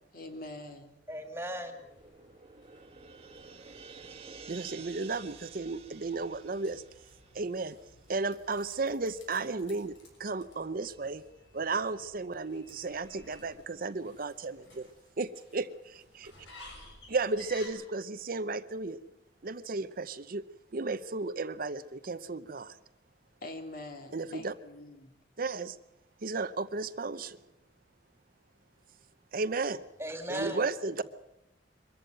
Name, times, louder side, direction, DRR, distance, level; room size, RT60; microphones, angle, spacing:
voice 1, 0.1-0.9 23.4-25.1, left 2 dB, 50° left, 5 dB, 2.5 m, -44 dB
voice 2, 1.1-1.8 30.0-30.6, equal, 15° right, 7 dB, 2.3 m, -36 dB
sound 1, 1.7-8.2, right 5 dB, 35° right, 1.4 m, -51 dB
sound 2, 1.8-17.7, left 1 dB, 80° left, 6.3 m, -56 dB
voice 3, 4.5-6.8 7.3-7.8 8.1-11.2 11.5-14.9 15.2-16.3 17.1-19.0 19.4-20.4 20.7-22.8 24.1-24.5 25.4-25.8 26.2-27.4 29.3-29.8 30.3-31.0, right 3 dB, 50° right, 12 dB, 0.7 m, -34 dB
23.0 x 14.0 x 9.1 m, 0.92 s
head